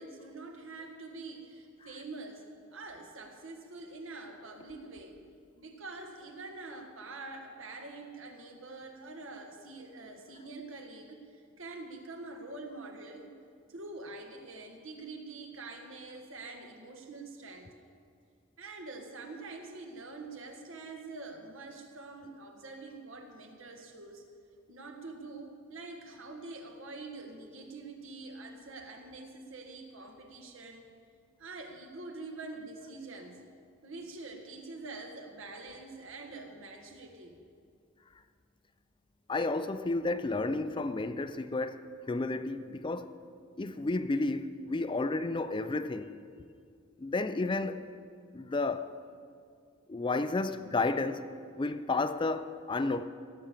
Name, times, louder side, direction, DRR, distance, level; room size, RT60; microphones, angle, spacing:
voice 1, 0.0-5.2 5.5-13.4 13.7-17.7 18.6-24.2 24.7-30.9 31.4-33.4 33.8-37.4, right 3 dB, 80° right, 1.6 m, -45 dB
voice 2, 39.3-43.1 43.6-46.1 47.0-47.8 48.3-48.9 49.9-51.3 51.6-53.0, left 3 dB, 25° left, 0.4 m, -32 dB
16.5 x 6.9 x 7.4 m
head